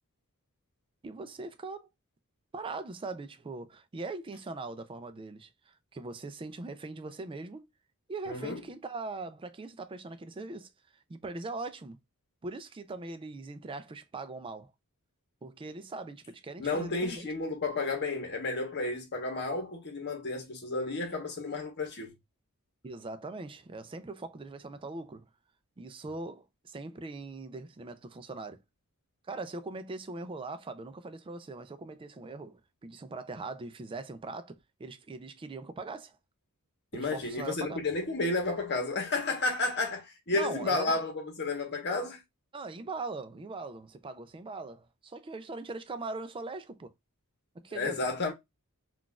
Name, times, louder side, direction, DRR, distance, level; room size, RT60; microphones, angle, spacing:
voice 1, 1.0-1.9 2.5-7.7 8.1-10.7 11.1-12.0 12.4-14.7 15.4-17.3 22.8-25.3 25.8-28.6 29.3-36.2 36.9-37.8 40.3-41.0 42.5-46.9 47.5-48.1, right 3 dB, 25° right, 0.4 m, -41 dB
voice 2, 8.3-8.6 16.6-22.1 36.9-42.2 47.7-48.3, left 3 dB, 50° left, 1.0 m, -32 dB
3.8 x 2.4 x 2.2 m
head